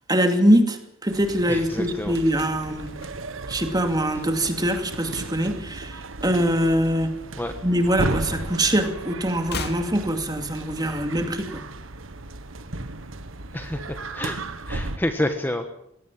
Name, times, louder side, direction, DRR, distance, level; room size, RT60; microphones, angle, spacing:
voice 1, 0.1-2.9 3.5-7.1 7.6-11.6, equal, 20° right, 6 dB, 2.6 m, -23 dB
sound 1, 1.1-15.0, right 2 dB, 80° right, 1.5 m, -35 dB
voice 2, 1.5-2.2 7.4-7.5 13.5-14.4 14.7-15.7, left 1 dB, 10° left, 6 dB, 1.3 m, -28 dB
sound 2, 2.3-4.6 4.9-5.2 5.5-7.0 7.2-8.6 8.8-11.0 11.2-11.3, left 3 dB, 55° left, 2.2 m, -40 dB
21.5 x 18.5 x 7.4 m, 0.78 s
head